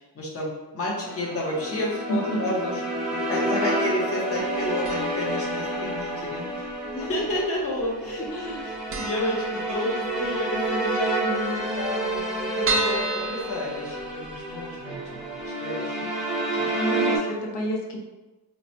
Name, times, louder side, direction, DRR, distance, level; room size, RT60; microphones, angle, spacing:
voice 1, 0.0-15.2 15.4-16.0 16.5-16.7, left 1 dB, 35° left, -4 dB, 0.7 m, -31 dB
sound 1, 1.1-17.2, right 1 dB, ahead, 0.7 m, -29 dB
voice 2, 2.1-2.5 8.3-8.6 16.5-18.0, equal, 85° left, -1 dB, 0.7 m, -30 dB
sound 2, 4.8-5.4 5.6-5.7 6.7-7.4 7.7-7.8 8.1-8.2 8.5-8.6 8.9-10.2 10.6-10.7 11.0-11.1 11.3-11.4 11.9-14.5 14.9-15.0 15.4-15.5, right 2 dB, 35° right, 0.4 m, -31 dB
4.5 x 2.0 x 2.7 m, 1.1 s
wide cardioid pair, 165°, 40 cm